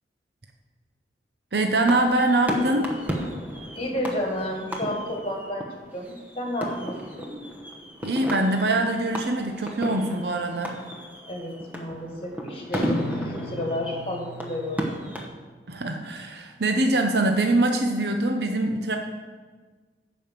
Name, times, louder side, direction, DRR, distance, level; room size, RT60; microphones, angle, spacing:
voice 1, 1.5-2.9 8.0-10.8 15.7-19.0, right 2 dB, 65° right, 4 dB, 0.8 m, -23 dB
sound 1, 1.8-15.3, equal, 10° right, 1.0 m, -34 dB
voice 2, 3.8-7.3 11.3-14.9, left 1 dB, 30° left, 1 dB, 1.9 m, -31 dB
sound 2, 12.7-15.3, left 1 dB, 55° left, 0.9 m, -39 dB
11.5 x 5.3 x 7.5 m, 1.4 s
head